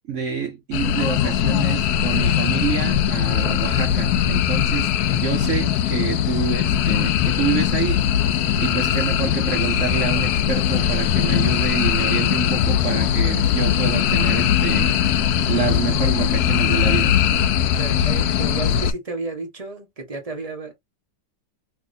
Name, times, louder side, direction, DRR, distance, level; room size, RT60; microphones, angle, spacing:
voice 1, 0.1-8.1 8.6-14.9 15.5-17.2, right 7 dB, 65° right, 0.7 m, -27 dB
sound 1, 0.7-18.9, left 9 dB, 70° left, 1.0 m, -20 dB
voice 2, 17.8-20.7, right 3 dB, 25° right, 0.9 m, -32 dB
3.5 x 2.9 x 2.6 m
omnidirectional pair, 1.8 m